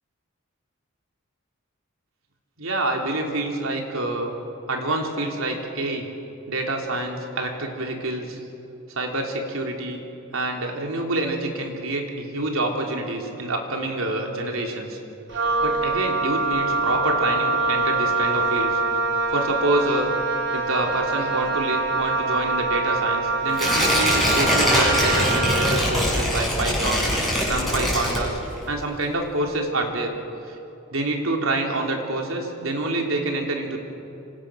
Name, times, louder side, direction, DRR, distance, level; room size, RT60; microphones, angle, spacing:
voice 1, 2.6-4.3 4.7-6.1 6.5-8.4 8.9-10.0 10.3-15.0 15.6-18.8 19.3-20.1 20.5-27.1 27.5-28.3 28.7-30.1 30.4-30.6 30.9-33.8, right 2 dB, 75° right, 2 dB, 3.6 m, -27 dB
Wind instrument woodwind instrument, 15.3-25.9, right 3 dB, 60° right, 3.3 m, -24 dB
Tearing, 23.5-28.7 29.0-29.1, left 1 dB, ahead, 7.8 m, -22 dB
26.5 x 26.5 x 6.5 m, 2.9 s
head